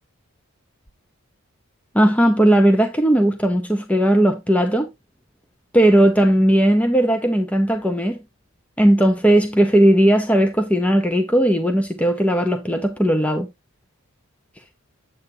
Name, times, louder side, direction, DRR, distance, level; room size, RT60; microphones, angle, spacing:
voice 1, 1.9-4.9 5.7-8.2 8.8-13.5, right 1 dB, 5° left, 0.8 m, -17 dB
8.7 x 8.3 x 2.8 m
head